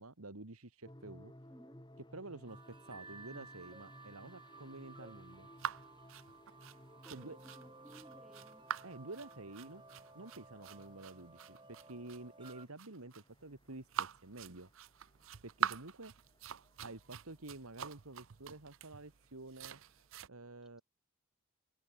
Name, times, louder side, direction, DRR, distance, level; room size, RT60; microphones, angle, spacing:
voice 1, 0.0-1.3 2.1-5.5 7.1-7.4 8.8-9.8 10.1-14.7 15.4-16.1 16.8-19.8 20.3-20.8, right 2 dB, 85° right, 2.3 m, -50 dB
sound 1, 0.8-20.1, left 1 dB, 20° left, 2.9 m, -61 dB
voice 2, 1.5-1.8 7.0-7.3 7.6-8.6, equal, ahead, 2.0 m, -59 dB
sound 2, 2.5-12.7, right 3 dB, 20° right, 3.5 m, -57 dB
sound 3, 5.6-20.3, right 8 dB, 65° right, 0.6 m, -44 dB
open air
head